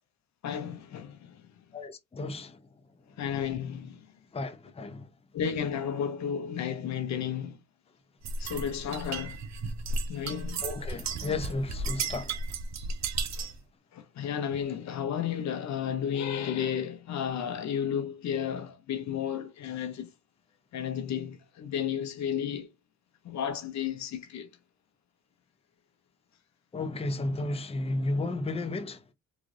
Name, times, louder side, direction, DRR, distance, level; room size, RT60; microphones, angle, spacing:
voice 1, 0.4-1.4 3.2-4.0 5.3-7.6 8.4-9.4 10.1-10.6 13.3-13.5 13.9-20.1 20.7-22.7 23.2-24.5, left 8 dB, 65° left, 0.9 m, -32 dB
voice 2, 1.7-2.6 4.3-5.1 10.6-12.4 26.7-29.0, left 2 dB, 20° left, 0.7 m, -33 dB
sound 1, 8.2-13.6, right 3 dB, 60° right, 0.9 m, -34 dB
3.8 x 2.5 x 3.2 m
cardioid pair, 90°, 30 cm